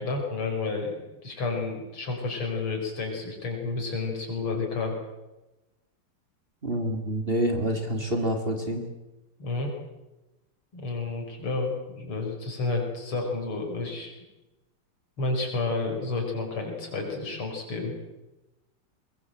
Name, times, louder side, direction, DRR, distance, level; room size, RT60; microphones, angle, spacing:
voice 1, 0.0-4.9 9.4-9.7 10.7-14.1 15.2-17.9, left 3 dB, 80° left, 2 dB, 5.8 m, -30 dB
voice 2, 6.6-8.8, right 1 dB, 25° right, 4 dB, 2.4 m, -27 dB
22.0 x 21.5 x 7.8 m, 1.0 s
omnidirectional pair, 2.4 m